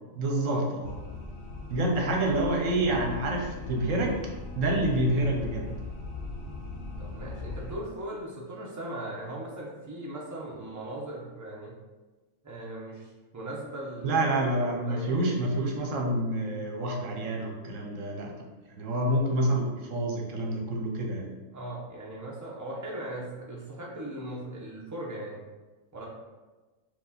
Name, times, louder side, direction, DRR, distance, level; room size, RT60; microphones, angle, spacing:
voice 1, 0.2-0.9 1.7-4.1 4.6-5.7 14.0-18.3 18.8-21.3, right 1 dB, 70° right, 1 dB, 1.2 m, -27 dB
sound 1, 0.8-7.7, left 3 dB, 55° left, 0.8 m, -39 dB
voice 2, 7.0-11.7 12.4-15.1 21.5-25.4 25.9-26.0, right 1 dB, 15° right, -4 dB, 0.7 m, -39 dB
4.6 x 2.4 x 4.1 m, 1.2 s
omnidirectional pair, 1.4 m